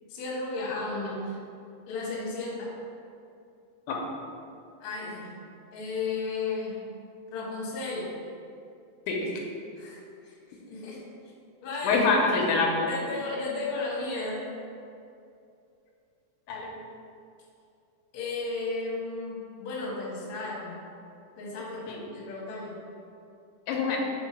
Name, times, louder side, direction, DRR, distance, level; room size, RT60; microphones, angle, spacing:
voice 1, 0.1-1.4 1.9-2.7 4.8-5.3 5.7-6.8 7.3-8.2 9.8-11.0 11.6-12.0 12.9-14.5 18.1-20.8 21.4-21.8 22.1-22.8, left 3 dB, 60° left, -5 dB, 1.9 m, -34 dB
voice 2, 11.8-12.9 16.5-16.7 21.9-22.0 23.7-24.0, left 3 dB, 90° left, 0 dB, 3.1 m, -25 dB
6.7 x 4.3 x 4.3 m, 2.5 s
omnidirectional pair, 5.3 m